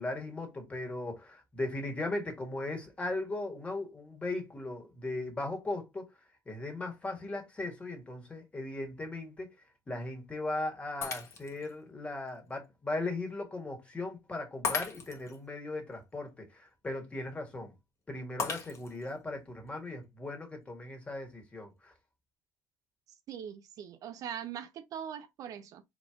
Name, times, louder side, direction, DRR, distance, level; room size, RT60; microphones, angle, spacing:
voice 1, 0.0-6.0 6.4-9.5 9.9-17.7 18.1-21.9, left 2 dB, 15° left, 1.6 m, -38 dB
Shatter, 11.0-11.7 12.3-12.4 14.6-15.4 18.4-19.1, left 5 dB, 40° left, 1.2 m, -36 dB
voice 2, 23.3-25.8, right 9 dB, 55° right, 0.5 m, -41 dB
4.2 x 3.0 x 3.5 m
cardioid pair, 125°, 7 cm